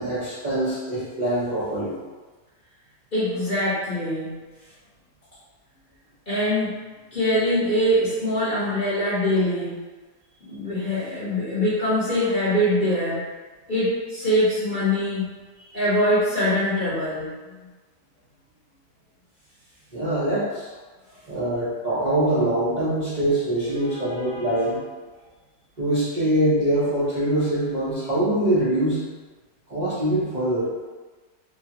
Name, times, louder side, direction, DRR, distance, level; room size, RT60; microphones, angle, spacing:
voice 1, 0.0-2.0 19.9-20.7 21.3-24.8 25.8-29.1 29.7-30.7, right 1 dB, 55° right, -11 dB, 0.4 m, -23 dB
voice 2, 3.1-4.3 6.3-6.8 7.1-9.8 10.5-13.2 13.7-15.3 15.7-17.3 17.6-17.7 23.8-24.6, equal, 40° left, -10 dB, 0.8 m, -23 dB
3.2 x 2.3 x 2.8 m, 1.3 s
omnidirectional pair, 1.9 m